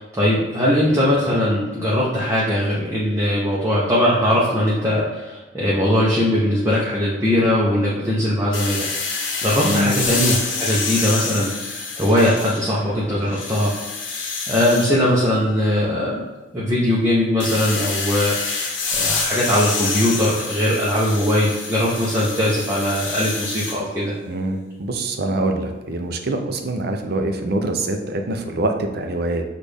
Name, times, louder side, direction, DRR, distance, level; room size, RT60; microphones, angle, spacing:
voice 1, 0.0-8.9 9.4-13.7 14.5-16.2 16.5-18.3 18.9-24.2, left 1 dB, 15° right, -7 dB, 0.7 m, -20 dB
sound 1, 8.5-12.8 13.2-14.9 17.4-23.8, left 4 dB, 70° left, 1.0 m, -27 dB
voice 2, 9.6-9.9 24.3-29.4, right 2 dB, 55° right, 5 dB, 0.5 m, -24 dB
6.2 x 2.5 x 3.4 m, 1.2 s
head